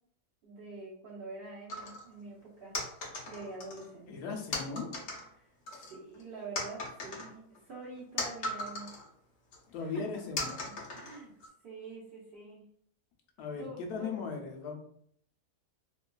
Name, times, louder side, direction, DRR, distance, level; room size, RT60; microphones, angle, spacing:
voice 1, 0.4-3.0 3.3-4.3 5.3-8.9 9.8-10.2 10.6-11.3 11.6-12.6 13.6-14.2, right 3 dB, 80° right, -5 dB, 0.5 m, -46 dB
sound 1, 1.7-2.1 2.7-3.9 4.5-5.3 5.7-6.2 6.6-9.1 9.5-9.6 10.4-11.5, left 2 dB, 60° left, 0.9 m, -38 dB
voice 2, 4.1-4.9 9.7-10.5 13.4-14.7, left 5 dB, 75° left, 2 dB, 1.1 m, -38 dB
2.9 x 2.3 x 2.2 m, 0.65 s
omnidirectional pair, 1.7 m